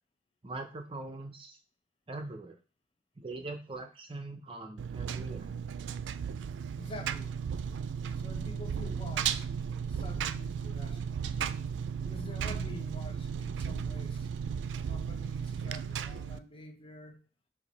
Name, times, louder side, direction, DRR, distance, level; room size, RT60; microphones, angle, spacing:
voice 1, 0.4-1.6 2.1-2.5 3.2-5.5, right 2 dB, 30° right, 0.6 m, -42 dB
Engine, 4.8-16.4, right 7 dB, 85° right, 0.3 m, -35 dB
voice 2, 6.8-7.3 8.2-9.4 9.9-11.2 12.0-14.3 14.9-17.2, left 2 dB, 30° left, 0.8 m, -47 dB
4.7 x 2.7 x 4.1 m
head